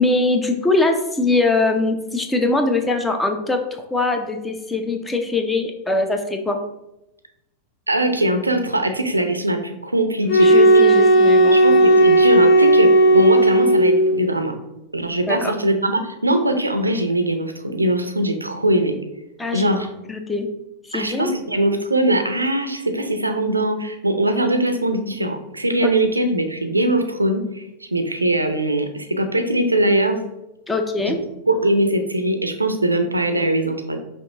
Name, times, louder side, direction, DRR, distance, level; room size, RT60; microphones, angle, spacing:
voice 1, 0.0-6.6 10.4-11.6 15.3-15.5 19.4-19.7 20.1-20.5 20.9-21.3 25.8-25.9 30.7-31.2, left 2 dB, 10° left, 5 dB, 0.6 m, -22 dB
voice 2, 7.9-10.6 11.5-14.5 14.9-19.0 19.5-19.9 20.9-27.6 27.9-30.2 31.0-31.2 31.5-34.0, right 1 dB, 85° right, 6 dB, 0.5 m, -21 dB
sound 1, 10.3-14.2, right 1 dB, 40° left, 1.6 m, -13 dB
5.3 x 2.7 x 3.5 m, 0.91 s
figure-of-eight pair, 90°, 0 cm